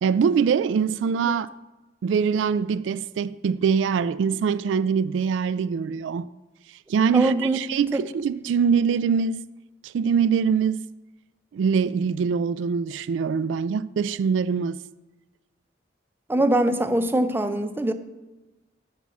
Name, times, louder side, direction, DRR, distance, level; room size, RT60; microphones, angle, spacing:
voice 1, 0.0-1.5 2.0-6.3 6.9-9.4 9.8-10.8 11.5-14.8, right 6 dB, 80° right, 0.3 m, -23 dB
voice 2, 7.1-7.6 7.9-8.0 16.3-17.9, right 1 dB, 10° right, 0.5 m, -22 dB
7.1 x 5.6 x 7.5 m
head